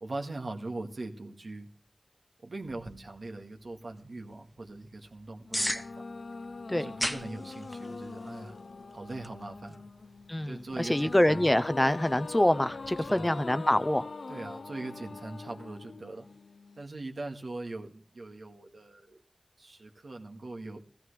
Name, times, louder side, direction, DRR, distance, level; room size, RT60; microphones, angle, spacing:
voice 1, 0.0-1.7 2.4-5.9 6.7-8.6 8.9-9.8 10.4-11.4 13.1-13.5 14.3-16.3 16.8-19.2 19.6-20.8, right 2 dB, 70° right, 3 dB, 1.9 m, -41 dB
sound 1, 2.6-13.2, equal, ahead, 1.0 m, -42 dB
sound 2, 5.5-16.8, left 3 dB, 70° left, 0.6 m, -43 dB
voice 2, 10.3-14.1, left 1 dB, 20° left, 13 dB, 0.6 m, -25 dB
15.5 x 15.5 x 3.4 m, 0.42 s
wide cardioid pair, 65°, 0 cm